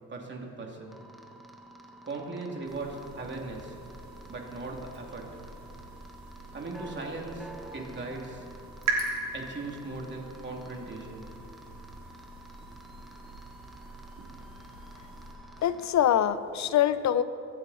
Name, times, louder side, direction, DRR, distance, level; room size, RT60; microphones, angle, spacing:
voice 1, 0.1-1.0 2.0-3.8 4.3-5.4 6.5-8.5 9.3-11.3, right 3 dB, 35° right, 0 dB, 2.9 m, -38 dB
sound 1, 0.9-15.9, right 1 dB, ahead, 1.5 m, -50 dB
sound 2, 2.7-15.3, right 3 dB, 70° right, 3.4 m, -41 dB
voice 2, 15.6-17.2, left 10 dB, 65° left, 13 dB, 0.8 m, -24 dB
25.0 x 9.4 x 4.3 m, 2.6 s
cardioid pair, 90°, 30 cm